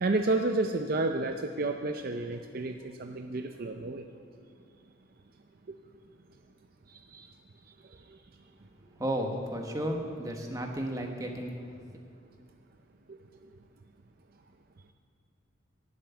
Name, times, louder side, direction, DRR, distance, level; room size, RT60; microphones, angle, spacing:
voice 1, 0.0-4.0 6.9-7.2, right 2 dB, 45° right, 5 dB, 0.5 m, -30 dB
voice 2, 9.0-11.8, right 1 dB, 15° right, 2 dB, 1.2 m, -33 dB
11.5 x 7.6 x 9.4 m, 2.2 s
head